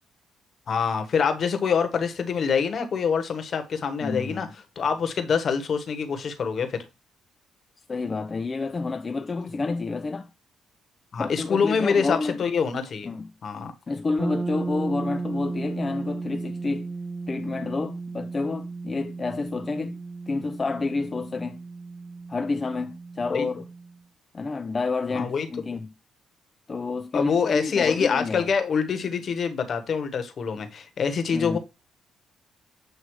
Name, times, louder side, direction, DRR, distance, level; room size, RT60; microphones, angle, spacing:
voice 1, 0.7-4.5 4.8-6.9 11.1-13.1 13.4-13.7 23.3-23.5 25.1-25.5 27.1-31.6, left 6 dB, 55° left, 1.2 m, -25 dB
voice 2, 4.0-4.5 7.9-10.3 11.2-12.4 13.0-13.3 13.9-16.9 17.3-20.0 20.3-21.6 22.3-23.6 24.3-25.9 26.7-28.5 31.3-31.6, left 3 dB, 30° left, 0.4 m, -29 dB
sound 1, 14.2-24.0, right 3 dB, 15° right, 0.9 m, -35 dB
7.9 x 2.7 x 4.7 m
cardioid pair, 90°, 0 cm